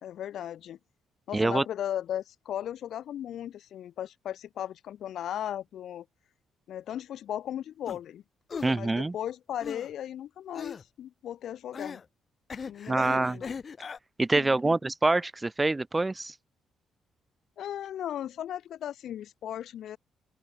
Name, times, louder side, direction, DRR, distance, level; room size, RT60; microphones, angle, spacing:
voice 1, 0.0-0.8 1.3-6.1 6.7-8.2 8.7-12.0 12.7-13.5 14.4-14.8 17.6-20.0, left 11 dB, 70° left, 4.1 m, -36 dB
voice 2, 1.3-1.6 8.6-9.1 12.9-13.4 14.2-16.3, right 2 dB, 20° right, 0.5 m, -25 dB
sound 1, 7.9-8.0 8.5-8.8 9.6-9.9 10.5-10.8 11.7-12.1 12.5-14.0, left 5 dB, 40° left, 4.9 m, -38 dB
open air
cardioid pair, 90°, 0 cm